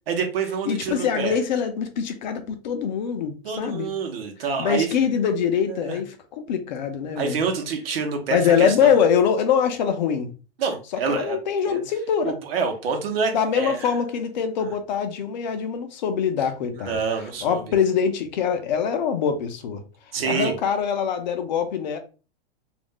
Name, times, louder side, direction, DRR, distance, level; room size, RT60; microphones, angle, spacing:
voice 1, 0.1-1.4 3.4-5.0 5.7-6.0 7.2-8.9 10.6-11.4 11.7-11.8 12.2-13.9 14.6-14.7 16.7-17.6 20.1-20.5, right 5 dB, 70° right, 0.8 m, -27 dB
voice 2, 0.7-3.9 4.6-7.4 8.3-10.3 11.1-12.3 13.3-17.0 17.4-19.8 20.2-22.0, left 7 dB, 45° left, 0.5 m, -23 dB
2.4 x 2.1 x 3.5 m
supercardioid pair, 170°, 31 cm